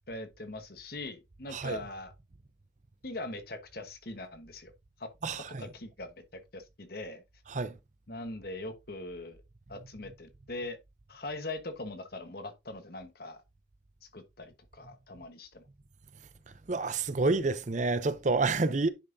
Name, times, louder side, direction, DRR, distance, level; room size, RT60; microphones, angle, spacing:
voice 1, 0.1-2.1 3.0-4.7 5.0-7.2 8.1-9.4 9.7-10.8 11.1-13.4 14.1-15.6, left 2 dB, 50° left, 1.2 m, -41 dB
voice 2, 5.2-5.6 7.5-7.7 16.7-18.9, right 3 dB, 40° right, 0.6 m, -28 dB
10.0 x 5.6 x 2.7 m
head